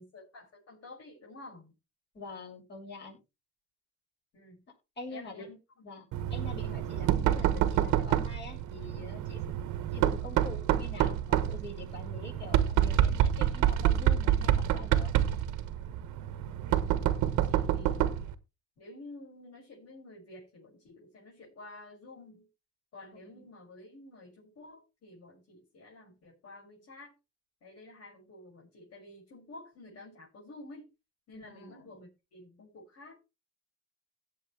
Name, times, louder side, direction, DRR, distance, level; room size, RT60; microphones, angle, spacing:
voice 1, 0.0-1.7 4.3-4.6 5.1-5.6 6.1-6.4 16.3-18.3 18.8-22.5 22.9-27.1 27.6-30.9 31.3-33.2, left 2 dB, 55° left, 6.9 m, -51 dB
voice 2, 2.1-3.2 5.0-5.5 5.8-9.4 9.9-15.1 23.1-23.5 31.3-32.0, left 3 dB, 35° left, 7.8 m, -45 dB
Knock, 6.1-18.3, right 11 dB, 75° right, 1.3 m, -28 dB
17.0 x 7.3 x 3.4 m
cardioid pair, 105°, 29 cm